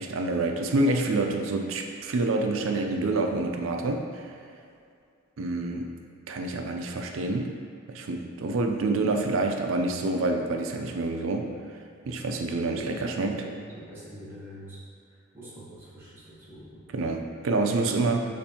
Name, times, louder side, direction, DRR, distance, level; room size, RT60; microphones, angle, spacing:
voice 1, 0.0-4.3 5.4-5.9 6.3-7.5 7.9-11.5 12.0-13.4 16.9-18.2, right 2 dB, 75° right, 3 dB, 0.4 m, -27 dB
voice 2, 13.3-14.8 15.1-16.8 17.8-18.2, right 1 dB, 10° right, -8 dB, 1.1 m, -45 dB
6.8 x 2.6 x 2.8 m, 2.3 s
head